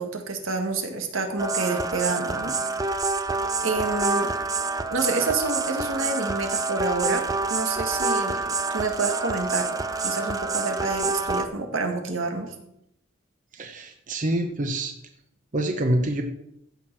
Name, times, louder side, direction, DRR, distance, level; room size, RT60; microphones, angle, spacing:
voice 1, 0.0-2.5 3.6-4.3 4.9-7.2 7.5-9.8 10.0-12.5, right 3 dB, 85° right, 4 dB, 1.7 m, -28 dB
sound 1, 1.4-11.4, right 3 dB, 20° right, 0.5 m, -27 dB
voice 2, 13.5-14.9 15.5-16.2, right 1 dB, 40° right, 5 dB, 0.9 m, -26 dB
14.5 x 6.3 x 4.6 m, 0.79 s
head